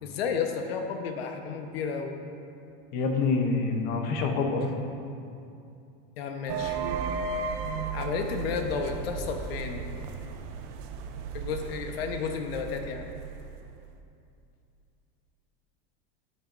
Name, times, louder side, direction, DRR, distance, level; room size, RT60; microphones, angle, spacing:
voice 1, 0.0-2.1 6.2-6.8 7.9-9.8 11.3-13.1, left 5 dB, 90° left, 5 dB, 1.1 m, -32 dB
voice 2, 2.9-4.9, left 4 dB, 35° left, 4 dB, 0.8 m, -27 dB
sound 1, 6.5-13.9, right 5 dB, 40° right, 0.6 m, -35 dB
12.5 x 9.1 x 2.6 m, 2.6 s
supercardioid pair, 170°, 29 cm